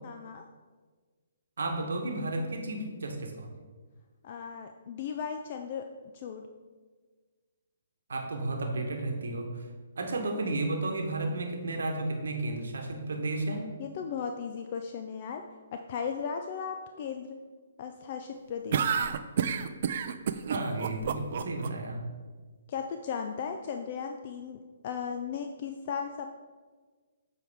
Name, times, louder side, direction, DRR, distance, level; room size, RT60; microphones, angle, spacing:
voice 1, 0.0-0.4 4.2-6.5 13.8-15.4 15.7-17.4 17.8-19.0 22.7-26.3, left 6 dB, 45° left, 5 dB, 0.4 m, -36 dB
voice 2, 1.6-3.6 8.1-9.6 10.0-13.6 20.4-22.0, right 2 dB, 80° right, 3 dB, 1.0 m, -33 dB
sound 1, 18.7-21.7, right 7 dB, 55° right, 0.4 m, -29 dB
6.9 x 4.6 x 3.5 m, 1.4 s
hypercardioid pair, 145°, 0 cm